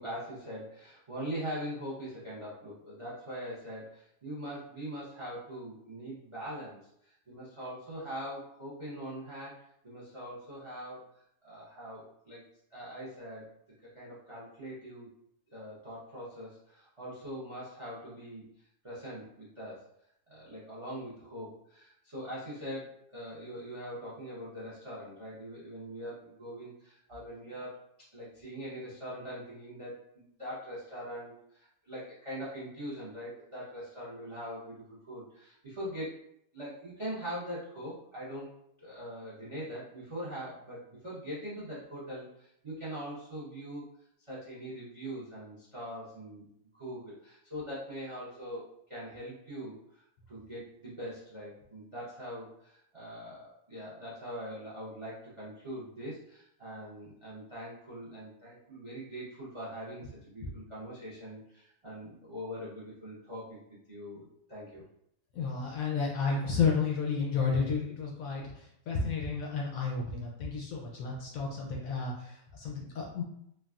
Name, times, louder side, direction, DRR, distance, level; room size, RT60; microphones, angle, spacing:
voice 1, 0.0-9.6 9.8-12.4 12.7-13.5 13.8-15.1 15.5-19.8 20.3-36.2 36.5-38.5 38.8-43.9 44.3-46.5 46.7-63.6 63.9-64.9, equal, 55° right, -8 dB, 0.3 m, -42 dB
voice 2, 65.3-73.2, left 5 dB, 70° left, -1 dB, 0.8 m, -32 dB
3.3 x 2.2 x 2.3 m, 0.75 s
omnidirectional pair, 1.8 m